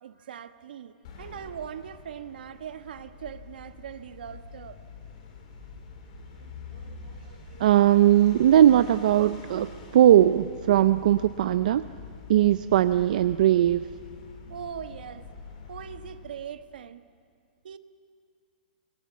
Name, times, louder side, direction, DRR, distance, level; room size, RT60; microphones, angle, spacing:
voice 1, 0.0-4.8 14.5-15.2 15.7-17.0 17.6-17.8, right 8 dB, 70° right, 10 dB, 1.2 m, -40 dB
sound 1, 1.0-16.5, left 5 dB, 45° left, 4.5 m, -45 dB
voice 2, 7.6-11.9 12.3-13.8, right 11 dB, 55° right, 12 dB, 0.5 m, -19 dB
28.5 x 22.0 x 7.2 m, 2.2 s
hypercardioid pair, 165°, 5 cm